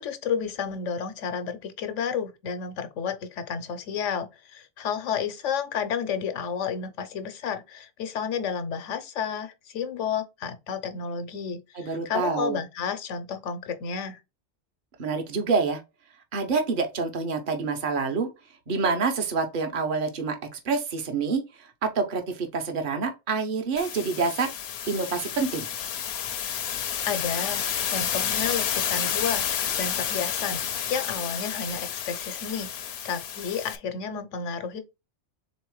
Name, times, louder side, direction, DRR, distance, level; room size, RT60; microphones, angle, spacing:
voice 1, 0.0-14.2 27.1-34.8, left 6 dB, 90° left, 1.1 m, -31 dB
voice 2, 11.7-12.6 15.0-15.8 16.3-18.3 18.7-24.5 24.9-25.7, right 4 dB, 50° right, 1.0 m, -27 dB
sound 1, 23.8-33.8, left 9 dB, 65° left, 0.8 m, -30 dB
3.7 x 3.0 x 4.7 m
omnidirectional pair, 1.2 m